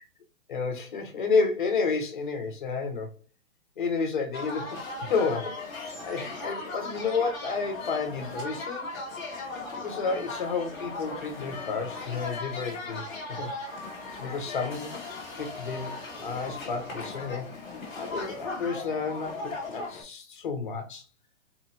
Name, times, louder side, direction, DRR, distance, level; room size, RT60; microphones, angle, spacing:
voice 1, 0.5-3.1 3.8-4.8 5.1-8.9 9.4-13.0 13.4-13.5 14.1-15.0 15.4-15.9 16.2-17.5 17.9-21.0, left 4 dB, 40° left, 0.7 m, -31 dB
sound 1, 4.3-20.0, left 3 dB, ahead, 0.7 m, -38 dB
4.2 x 2.8 x 2.8 m
hypercardioid pair, 175°, 40 cm